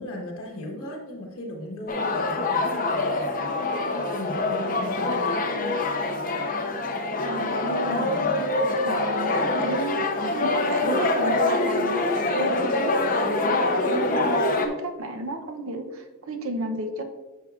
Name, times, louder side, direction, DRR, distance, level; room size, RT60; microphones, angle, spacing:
voice 1, 0.0-5.3 7.9-8.4, left 1 dB, 65° left, -2 dB, 1.5 m, -37 dB
sound 1, 1.9-14.7, left 2 dB, 40° left, 0.8 m, -25 dB
voice 2, 7.2-8.4 8.8-10.0 10.3-17.0, right 2 dB, 65° right, 6 dB, 0.7 m, -33 dB
9.9 x 5.9 x 2.5 m, 1.2 s
head